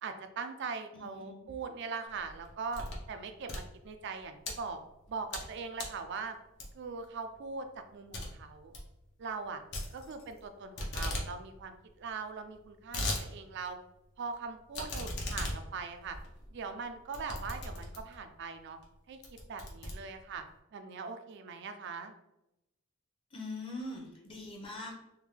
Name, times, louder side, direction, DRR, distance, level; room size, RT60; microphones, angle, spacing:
voice 1, 0.0-4.8 5.1-6.4 6.7-8.7 9.2-9.6 9.9-13.8 14.2-16.2 16.5-18.8 19.1-20.4 20.7-22.1, right 5 dB, 60° right, 8 dB, 0.4 m, -41 dB
voice 2, 0.9-1.4 23.3-24.9, left 2 dB, 25° left, -1 dB, 0.8 m, -42 dB
sound 1, 2.1-3.1 3.4-4.5 5.0-5.5 5.8-6.0 6.6-7.0 7.3-7.4 7.7-7.8 8.1-8.3 8.6-8.9 9.7-10.5 10.8-11.3 11.6-11.7 11.9-12.0 12.5-13.2 13.7-13.8 14.7-18.2 18.8-18.9 19.2-20.5, left 1 dB, 60° left, 0.8 m, -38 dB
sound 2, 9.7-10.8, left 4 dB, 90° left, 0.8 m, -51 dB
3.5 x 2.2 x 3.2 m, 0.89 s
head